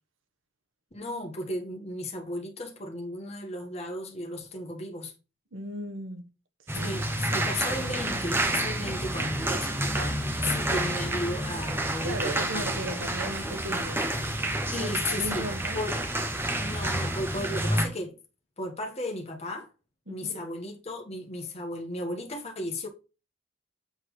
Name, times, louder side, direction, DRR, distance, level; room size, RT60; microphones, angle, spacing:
voice 1, 0.9-5.1 6.7-10.1 10.4-12.7 14.7-15.4 15.7-16.0 16.6-18.2 18.6-19.7 20.1-22.9, left 1 dB, 30° left, 1.6 m, -35 dB
voice 2, 5.5-6.3 6.7-7.5 8.8-9.5 12.0-14.1 14.7-15.8 20.1-20.5, right 1 dB, 75° right, 1.3 m, -37 dB
sound 1, 6.7-17.9, right 1 dB, 10° right, 1.3 m, -29 dB
7.9 x 4.4 x 4.9 m
head